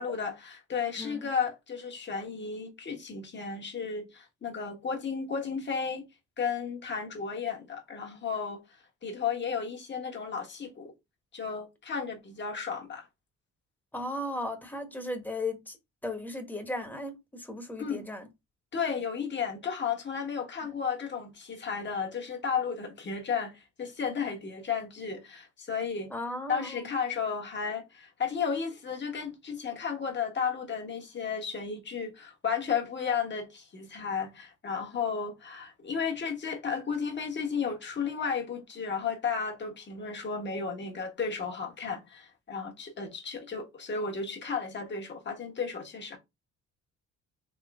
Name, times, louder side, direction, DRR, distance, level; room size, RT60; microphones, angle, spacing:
voice 1, 0.0-6.0 6.4-8.6 9.0-10.9 11.3-13.0 17.8-18.1 18.7-26.1 26.5-46.2, left 6 dB, 35° left, 1.4 m, -33 dB
voice 2, 13.9-15.8 16.0-18.3 26.1-26.9, left 1 dB, 5° left, 1.2 m, -36 dB
3.7 x 3.1 x 3.5 m
cardioid pair, 90°, 30 cm